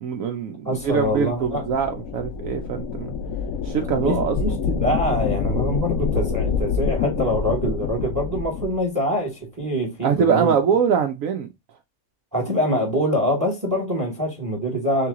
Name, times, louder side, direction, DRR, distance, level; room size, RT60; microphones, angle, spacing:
voice 1, 0.0-3.1 3.7-4.3 10.0-11.5, right 7 dB, 70° right, 1.0 m, -23 dB
voice 2, 0.6-1.7 4.0-10.5 12.3-15.1, equal, 15° right, 1.1 m, -24 dB
sound 1, 0.7-8.8, left 6 dB, 75° left, 1.0 m, -27 dB
3.8 x 3.0 x 3.6 m
omnidirectional pair, 1.5 m